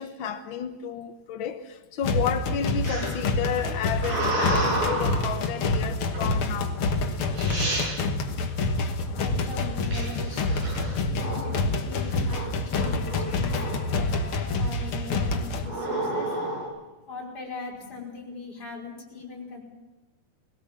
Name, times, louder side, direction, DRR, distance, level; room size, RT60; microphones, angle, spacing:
voice 1, 0.0-6.8, left 8 dB, 75° left, 1.1 m, -32 dB
sound 1, 2.0-15.7, left 3 dB, 55° left, 1.7 m, -27 dB
sound 2, 2.8-5.3 6.1-6.5 7.1-7.2 7.4-7.9 9.9-11.6 12.0-12.4 12.7-13.9 14.4-14.8 15.6-16.7, right 1 dB, 85° right, 8.4 m, -30 dB
voice 2, 9.2-10.7 11.1-13.6 13.9-16.3 17.1-19.6, left 4 dB, 30° left, 5.1 m, -40 dB
21.0 x 17.5 x 7.4 m
omnidirectional pair, 3.7 m